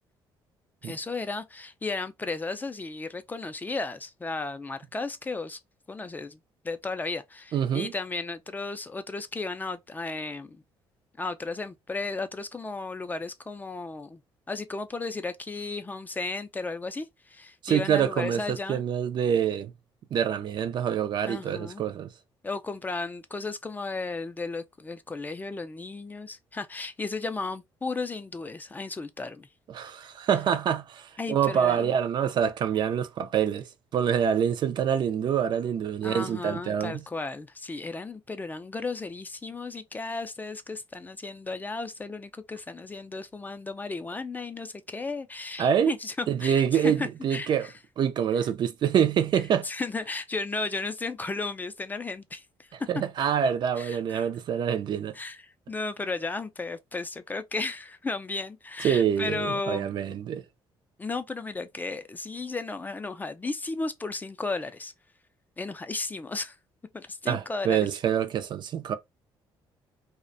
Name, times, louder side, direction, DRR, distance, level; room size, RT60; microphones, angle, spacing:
voice 1, 0.8-5.6 5.9-6.4 6.6-10.6 11.2-14.2 14.5-18.8 21.3-21.8 22.4-29.5 31.2-31.9 36.0-47.5 49.6-52.7 53.8-54.3 55.1-60.2 61.0-64.9 65.6-66.6 66.9-67.9, left 3 dB, 20° left, 0.3 m, -34 dB
voice 2, 7.5-7.9 17.6-19.7 20.1-22.1 29.7-37.0 45.6-45.9 46.3-47.7 48.0-49.7 52.7-55.2 58.8-60.4 67.3-69.0, right 8 dB, 55° right, 0.4 m, -26 dB
2.4 x 2.1 x 2.5 m
cardioid pair, 100°, 9 cm